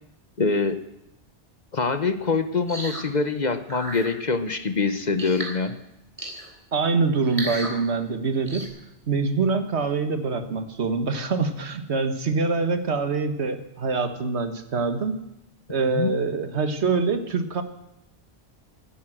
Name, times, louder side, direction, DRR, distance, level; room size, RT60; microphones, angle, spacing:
voice 1, 0.4-0.8 1.7-5.7 15.9-16.1, left 4 dB, 45° left, 10 dB, 1.0 m, -24 dB
sound 1, 2.7-3.0 3.7-4.1 5.2-5.6 6.2-6.5 7.2-7.7 8.4-8.7, right 1 dB, 30° right, 3.6 m, -34 dB
voice 2, 6.7-8.7 9.1-15.2 15.7-17.6, right 4 dB, 75° right, 8 dB, 1.7 m, -25 dB
16.0 x 10.0 x 7.8 m, 0.87 s
omnidirectional pair, 1.2 m